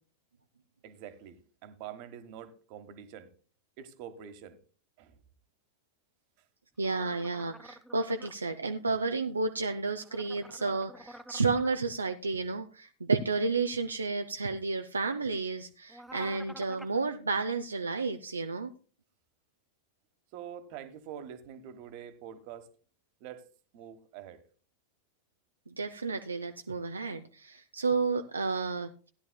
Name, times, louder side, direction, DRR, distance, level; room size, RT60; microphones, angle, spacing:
voice 1, 0.8-3.3 3.8-4.6 5.0-5.2 20.3-22.7 23.2-23.5 23.7-24.4, right 9 dB, 45° right, 1.3 m, -45 dB
sound 1, 6.8-8.3 10.0-11.8 15.9-17.0, right 1 dB, ahead, 0.5 m, -49 dB
voice 2, 6.8-18.7 25.7-28.9, right 4 dB, 75° right, 0.5 m, -31 dB
16.0 x 10.5 x 2.2 m
figure-of-eight pair, 90°, 0 cm